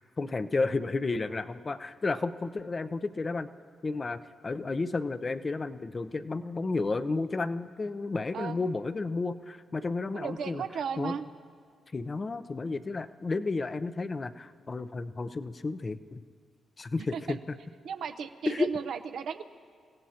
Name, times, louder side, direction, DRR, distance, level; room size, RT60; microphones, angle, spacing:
voice 1, 0.2-3.5 3.8-10.6 11.0-11.1 11.9-16.2 16.8-17.4 18.5-18.7, left 3 dB, 40° left, 11 dB, 0.6 m, -32 dB
voice 2, 10.1-11.3 17.1-17.4 17.8-19.4, right 6 dB, 70° right, 8 dB, 0.7 m, -35 dB
29.5 x 16.0 x 2.9 m, 2.1 s
supercardioid pair, 50°, 0 cm